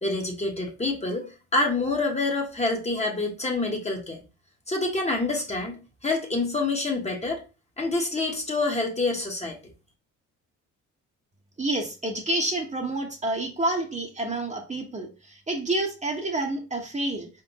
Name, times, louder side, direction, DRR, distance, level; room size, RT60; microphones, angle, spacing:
voice 1, 0.0-4.2 4.7-7.4 7.8-9.6, left 3 dB, 20° left, 1 dB, 1.2 m, -27 dB
voice 2, 11.6-17.3, right 2 dB, 25° right, 1 dB, 1.0 m, -29 dB
4.6 x 3.8 x 2.9 m, 0.32 s
cardioid pair, 90°, 30 cm